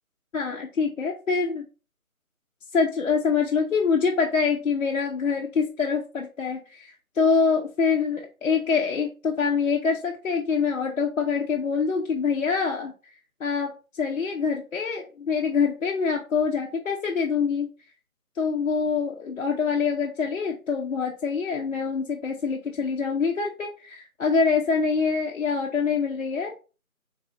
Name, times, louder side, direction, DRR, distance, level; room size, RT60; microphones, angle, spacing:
voice 1, 0.3-1.6 2.7-12.9 13.4-17.7 18.4-26.6, left 5 dB, 60° left, 0 dB, 0.5 m, -25 dB
3.2 x 2.7 x 2.4 m, 0.34 s
figure-of-eight pair, 170°, 44 cm